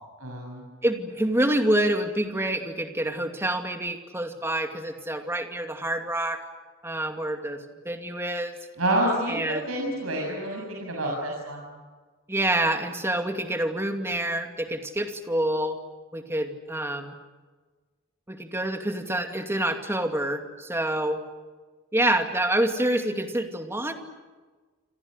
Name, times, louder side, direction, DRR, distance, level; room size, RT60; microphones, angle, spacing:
voice 1, 0.2-0.6 8.8-11.7, right 1 dB, 85° right, -1 dB, 7.3 m, -28 dB
voice 2, 0.8-6.4 6.8-7.6 7.8-8.5 9.3-9.7 12.3-15.8 16.1-17.2 18.3-21.2 21.9-23.9, right 1 dB, 10° right, 5 dB, 2.5 m, -27 dB
27.5 x 27.0 x 6.6 m, 1.4 s
head